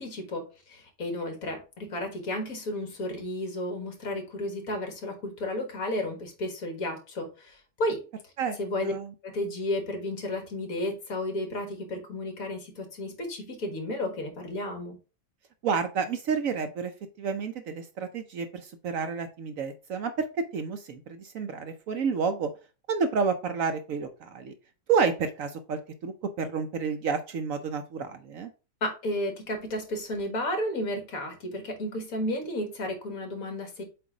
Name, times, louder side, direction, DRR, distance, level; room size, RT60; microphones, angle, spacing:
voice 1, 0.0-8.0 8.6-8.9 9.2-15.0 28.8-33.8, left 1 dB, 60° left, 1.9 m, -33 dB
voice 2, 15.6-16.9 17.2-20.1 20.5-22.5 22.9-24.5 24.9-28.5, right 5 dB, 65° right, 0.9 m, -30 dB
7.7 x 2.6 x 4.8 m
omnidirectional pair, 1.7 m